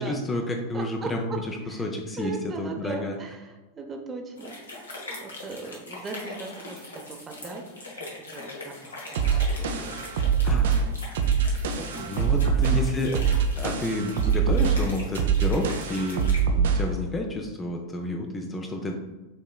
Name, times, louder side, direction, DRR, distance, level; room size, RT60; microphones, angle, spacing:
voice 1, 0.0-3.2 10.4-10.8 12.1-13.2 13.6-16.2 16.5-18.9, left 1 dB, 15° left, 2 dB, 0.5 m, -30 dB
voice 2, 0.7-1.1 1.7-1.8 2.2-4.9 5.2-7.6 8.0-9.0 9.6-10.5 11.8-11.9 12.1-12.5, right 4 dB, 20° right, 2 dB, 0.7 m, -39 dB
sound 1, 4.4-16.4, left 2 dB, 70° left, 1.1 m, -41 dB
sound 2, 9.2-17.0, right 6 dB, 55° right, 0.4 m, -24 dB
6.9 x 3.0 x 2.2 m, 1.2 s
figure-of-eight pair, 90°, 0 cm